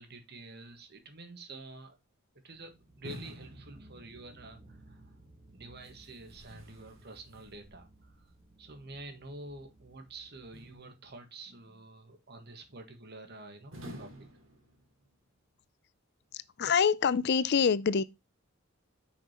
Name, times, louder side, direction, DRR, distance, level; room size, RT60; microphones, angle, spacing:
voice 1, 0.0-2.0 2.4-5.2 5.5-8.3 8.6-14.1, right 2 dB, 55° right, 1.6 m, -48 dB
sound 1, 2.5-10.7, right 1 dB, 30° right, 1.4 m, -58 dB
sound 2, 3.0-4.5 5.8-7.9 10.5-11.4 13.7-15.2, equal, 75° right, 2.8 m, -50 dB
voice 2, 16.3-18.0, left 6 dB, 55° left, 0.5 m, -26 dB
6.2 x 6.0 x 2.9 m
head